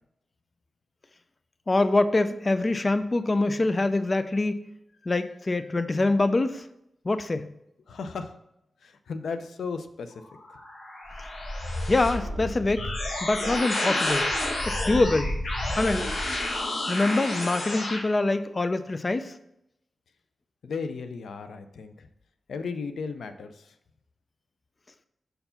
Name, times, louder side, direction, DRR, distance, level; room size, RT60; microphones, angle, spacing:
voice 1, 1.7-4.7 5.1-6.7 7.0-7.5 11.9-12.9 13.2-14.3 14.7-15.4 15.7-16.1 16.9-19.3, left 2 dB, 35° left, 11 dB, 0.5 m, -24 dB
voice 2, 7.9-8.3 8.8-10.1 20.6-22.1 22.5-23.7, left 5 dB, 90° left, 9 dB, 0.5 m, -35 dB
sound 1, 10.3-18.0, left 1 dB, 55° left, 1.5 m, -30 dB
6.6 x 4.5 x 5.7 m, 0.81 s
cardioid pair, 75°, 0 cm